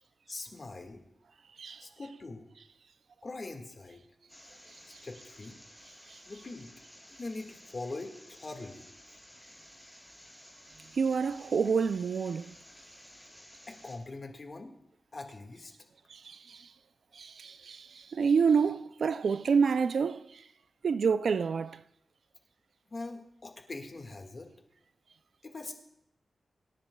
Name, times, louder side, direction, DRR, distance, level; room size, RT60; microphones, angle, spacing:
voice 1, 0.3-1.0 1.8-2.5 3.2-4.0 4.9-5.6 6.3-6.7 7.2-8.9 13.1-13.2 13.7-14.8 15.1-15.7 22.9-24.5 25.4-25.7, left 2 dB, 40° left, 1.7 m, -42 dB
sound 1, 4.3-14.0, equal, 5° left, 4.0 m, -54 dB
voice 2, 10.9-12.5 16.1-16.7 17.1-20.4 20.8-21.8, right 6 dB, 75° right, 0.4 m, -28 dB
25.5 x 10.0 x 2.3 m
wide cardioid pair, 105°, 0 cm